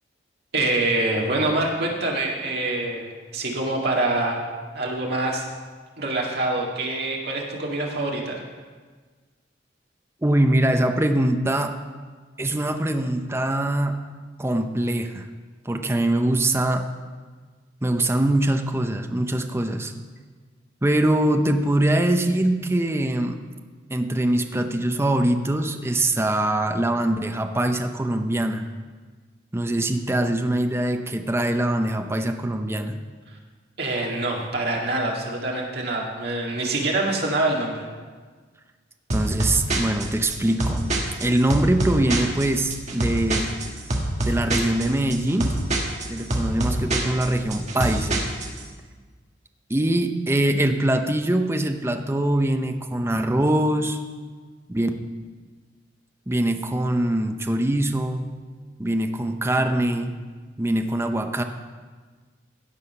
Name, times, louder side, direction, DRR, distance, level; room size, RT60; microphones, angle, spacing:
voice 1, 0.5-4.4 4.7-5.4 6.0-8.4 33.8-37.9, right 2 dB, 60° right, -2 dB, 2.1 m, -25 dB
voice 2, 10.2-11.8 12.4-14.0 14.4-15.3 15.6-16.8 17.8-19.9 20.8-23.4 23.9-28.7 29.5-33.0 39.1-40.9 41.2-43.5 44.3-45.6 46.1-48.2 49.7-54.0 54.7-54.9 56.3-58.3 58.8-60.2 60.6-61.4, right 1 dB, 15° right, 5 dB, 0.6 m, -23 dB
sound 1, 39.1-48.6, right 1 dB, 40° right, 1.4 m, -26 dB
16.5 x 5.6 x 5.6 m, 1.5 s
head